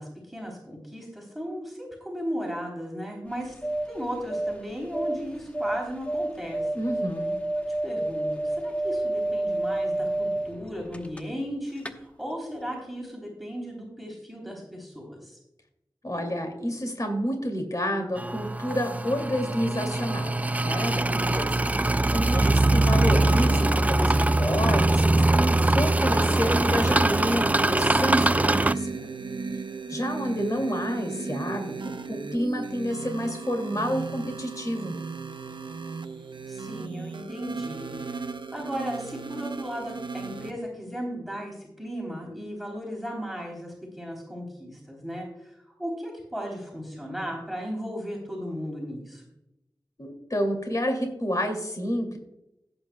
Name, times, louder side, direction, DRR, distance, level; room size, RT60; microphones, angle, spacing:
voice 1, 0.0-3.5 3.9-6.7 7.8-15.4 21.0-21.5 36.5-38.2 38.5-45.5 45.8-49.2, equal, ahead, -1 dB, 3.4 m, -36 dB
sound 1, 3.3-11.5 11.8-11.9, right 1 dB, 15° left, 1.0 m, -30 dB
voice 2, 6.7-7.3 16.0-20.3 20.6-29.1 29.9-34.9 50.0-52.2, equal, 45° left, 4 dB, 2.4 m, -29 dB
sound 2, 18.2-28.7, right 2 dB, 20° right, 0.3 m, -22 dB
sound 3, 22.9-40.5, right 4 dB, 75° right, 0.7 m, -36 dB
16.5 x 8.5 x 2.2 m, 0.86 s
wide cardioid pair, 65°, 8 cm